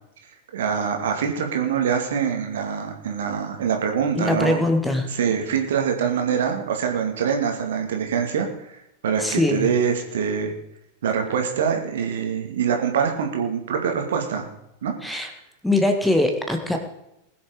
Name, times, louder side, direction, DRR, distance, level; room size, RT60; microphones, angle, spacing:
voice 1, 0.5-4.6 5.1-8.8 9.0-10.5 11.0-14.5 14.8-14.9, right 7 dB, 60° right, 3 dB, 2.3 m, -24 dB
voice 2, 4.2-5.1 9.2-9.7 15.0-15.3 15.6-16.8, left 1 dB, 5° left, 5 dB, 1.9 m, -22 dB
20.5 x 7.1 x 5.0 m, 0.83 s
figure-of-eight pair, 90°, 0 cm